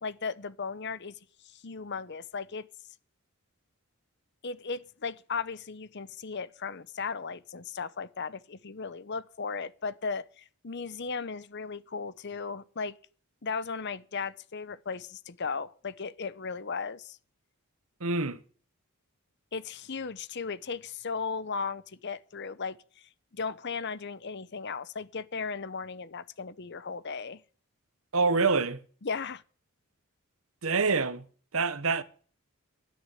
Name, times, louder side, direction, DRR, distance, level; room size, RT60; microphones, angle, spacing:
voice 1, 0.0-1.1 1.4-2.7 4.4-13.0 13.4-17.2 19.5-27.4 29.0-29.4, left 5 dB, 50° left, 0.8 m, -36 dB
voice 2, 18.0-18.4 28.1-28.8 30.6-31.2 31.5-32.0, right 4 dB, 70° right, 1.1 m, -26 dB
11.5 x 9.7 x 9.1 m
head